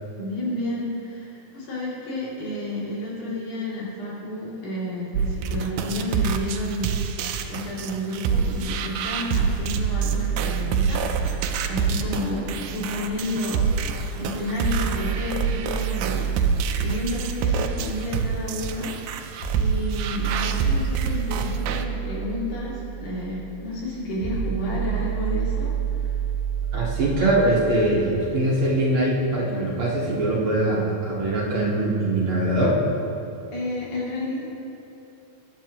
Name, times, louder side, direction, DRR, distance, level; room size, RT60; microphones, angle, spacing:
voice 1, 0.2-19.3 19.6-26.1 33.5-34.5, left 1 dB, 80° left, -7 dB, 4.2 m, -31 dB
sound 1, 5.1-21.8, right 6 dB, 85° right, 2.1 m, -27 dB
sound 2, 9.8-13.8 14.6-28.6, right 8 dB, 15° left, 3.2 m, -30 dB
voice 2, 26.7-32.8, right 1 dB, 50° right, -5 dB, 2.0 m, -22 dB
20.5 x 9.5 x 3.0 m, 2.8 s
omnidirectional pair, 3.5 m